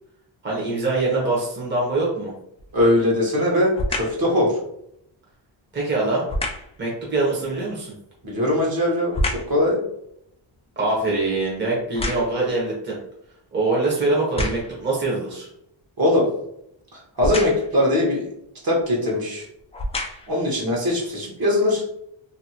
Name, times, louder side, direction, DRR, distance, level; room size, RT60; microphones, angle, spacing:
voice 1, 0.4-2.3 5.7-6.3 6.8-7.9 10.8-13.0 13.5-15.5, right 2 dB, 25° right, -5 dB, 0.8 m, -23 dB
sound 1, 2.6-3.0 3.7-4.3 6.3-6.8 8.2-9.6 10.1-12.6 13.2-13.3 14.1-14.8 17.2-17.8 18.8-18.9 19.6-20.4 21.0-21.1, left 1 dB, 15° left, 0.3 m, -29 dB
voice 2, 2.7-4.5 8.2-9.2 9.5-9.8 16.0-16.3 17.2-18.2 18.6-19.5 20.3-21.8, left 1 dB, 45° right, -3 dB, 1.1 m, -20 dB
2.7 x 2.6 x 2.8 m, 0.75 s
wide cardioid pair, 120°, 48 cm